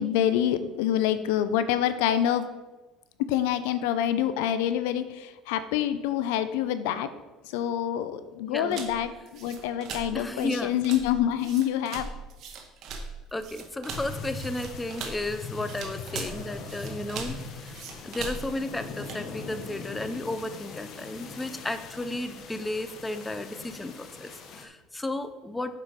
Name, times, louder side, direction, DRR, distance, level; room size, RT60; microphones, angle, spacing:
voice 1, 0.0-2.5 3.3-7.1 7.5-12.1, left 10 dB, 90° left, 12 dB, 0.5 m, -26 dB
sound 1, 8.7-19.3, right 5 dB, 50° right, 1.2 m, -40 dB
voice 2, 10.1-10.8 13.3-17.7 18.0-25.8, left 2 dB, 10° left, 10 dB, 0.5 m, -34 dB
sound 2, 13.9-24.7, left 4 dB, 50° left, 1.0 m, -41 dB
7.6 x 5.0 x 5.0 m, 1.2 s
cardioid pair, 125°, 0 cm